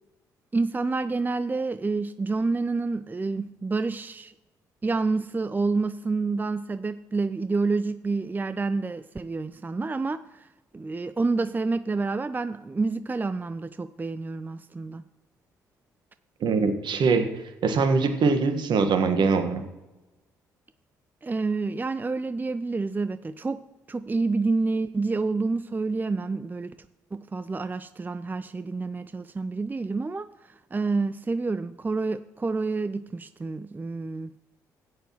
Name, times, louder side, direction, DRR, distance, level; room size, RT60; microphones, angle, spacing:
voice 1, 0.5-4.3 4.8-10.2 10.7-15.0 21.2-23.6 23.9-26.7 27.1-30.3 30.7-34.4, right 3 dB, 20° right, 12 dB, 0.5 m, -28 dB
voice 2, 16.4-17.2 17.6-19.6, right 4 dB, 60° right, 7 dB, 1.5 m, -22 dB
16.0 x 9.3 x 3.0 m, 1.0 s
hypercardioid pair, 45°, 9 cm